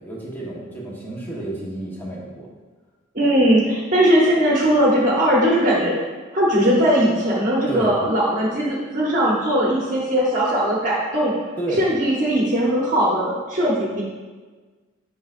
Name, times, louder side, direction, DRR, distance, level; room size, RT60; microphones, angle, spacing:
voice 1, 0.0-2.5 7.7-7.9 11.6-11.8, right 2 dB, 10° left, -5 dB, 1.2 m, -30 dB
voice 2, 3.1-6.0 6.3-11.3 11.7-14.0, equal, 40° right, -5 dB, 1.0 m, -19 dB
8.4 x 5.7 x 2.5 m, 1.4 s
head